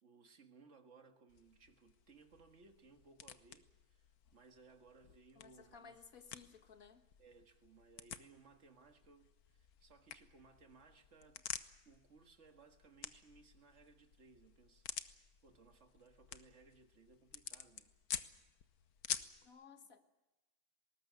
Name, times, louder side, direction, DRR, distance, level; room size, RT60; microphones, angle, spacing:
voice 1, 0.0-6.0 7.2-11.4 11.9-18.0, right 4 dB, 50° right, 6 dB, 2.0 m, -64 dB
sound 1, 1.3-19.5, left 9 dB, 80° left, 1.5 m, -50 dB
voice 2, 5.4-7.1 19.4-20.0, left 6 dB, 65° left, 7 dB, 2.0 m, -58 dB
20.0 x 19.0 x 9.4 m, 1.0 s
omnidirectional pair, 1.6 m